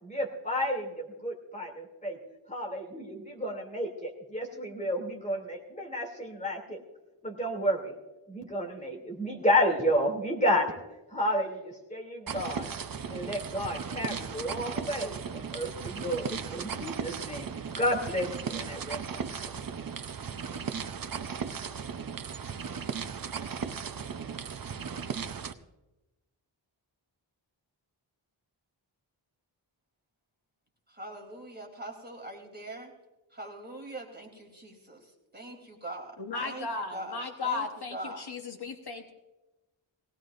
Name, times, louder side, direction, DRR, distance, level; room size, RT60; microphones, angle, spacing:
voice 1, 0.0-2.2 2.5-6.8 7.2-7.9 8.3-10.8 11.1-12.7 13.1-17.5 17.8-19.5, equal, 15° left, 0 dB, 2.8 m, -31 dB
sound 1, 12.3-25.5, right 6 dB, 45° right, 0.7 m, -36 dB
voice 2, 30.9-32.9 33.3-37.6 37.9-38.2, right 1 dB, 20° right, 0 dB, 3.2 m, -43 dB
voice 3, 36.2-39.1, left 4 dB, 55° left, 4 dB, 1.2 m, -35 dB
19.5 x 17.5 x 2.5 m, 1.0 s
wide cardioid pair, 115°, 46 cm